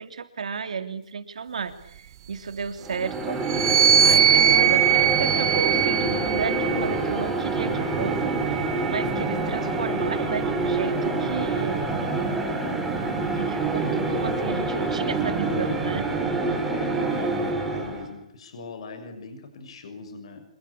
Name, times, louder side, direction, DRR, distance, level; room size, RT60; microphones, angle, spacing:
voice 1, 0.0-3.5 3.8-11.9 13.3-16.1, right 5 dB, 80° right, 8 dB, 3.3 m, -33 dB
sound 1, 2.8-18.1, right 3 dB, 5° right, 3.4 m, -26 dB
sound 2, 3.4-7.0 7.9-9.5, right 9 dB, 35° right, 1.3 m, -22 dB
voice 2, 16.7-20.4, left 4 dB, 55° left, 7 dB, 6.5 m, -39 dB
26.0 x 22.0 x 8.7 m, 0.69 s
hypercardioid pair, 165°, 4 cm